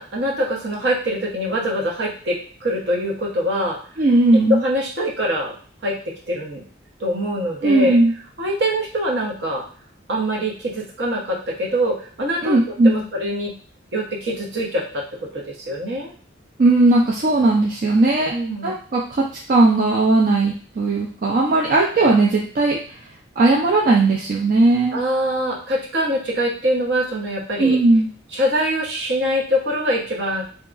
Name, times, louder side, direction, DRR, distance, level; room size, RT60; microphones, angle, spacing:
voice 1, 0.0-3.8 4.5-5.5 5.8-5.9 6.3-6.6 7.0-8.0 8.4-9.6 10.1-12.6 12.8-13.5 13.9-16.1 18.3-18.8 24.9-27.8 28.3-30.4, equal, 65° right, -2 dB, 0.9 m, -23 dB
voice 2, 4.0-4.6 7.6-8.1 12.4-13.0 16.6-18.3 18.6-22.8 23.4-25.0 27.6-28.1, right 2 dB, 50° right, -3 dB, 0.4 m, -17 dB
2.8 x 2.3 x 2.4 m, 0.43 s
head